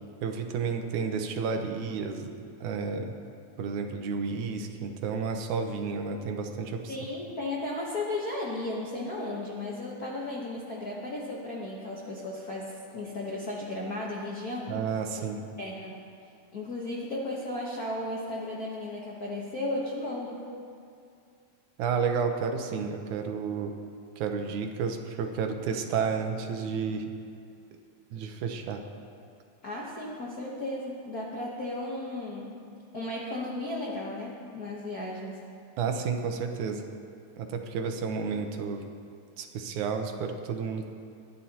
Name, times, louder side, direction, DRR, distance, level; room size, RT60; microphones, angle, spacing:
voice 1, 0.2-2.3 2.6-3.1 3.6-7.0 14.7-15.5 21.8-23.7 24.2-27.1 28.1-28.8 35.8-36.8 37.4-38.8 39.4-40.9, right 5 dB, 80° right, 5 dB, 2.3 m, -31 dB
voice 2, 6.9-14.8 15.6-16.0 16.5-20.4 29.6-32.5 32.9-35.4, left 2 dB, 65° left, -4 dB, 0.9 m, -35 dB
21.5 x 10.5 x 2.9 m, 2.4 s
omnidirectional pair, 3.5 m